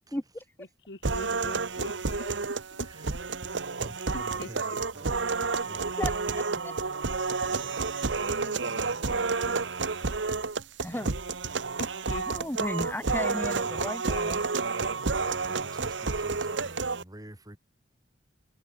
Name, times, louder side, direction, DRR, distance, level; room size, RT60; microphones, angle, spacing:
voice 1, 0.6-2.9 3.4-3.5 4.1-4.8 8.2-9.7 11.8-12.2 12.8-12.9, left 1 dB, 70° left, 2.7 m, -44 dB
sound 1, 1.0-17.0, right 4 dB, 75° right, 1.2 m, -30 dB
voice 2, 2.8-3.5 3.8-5.4 5.6-5.9 13.0-13.9 15.2-17.6, right 1 dB, 20° right, 3.1 m, -48 dB
voice 3, 6.0-6.7 10.8-11.1 12.3-14.4 15.2-15.3, left 1 dB, 10° left, 2.1 m, -35 dB
head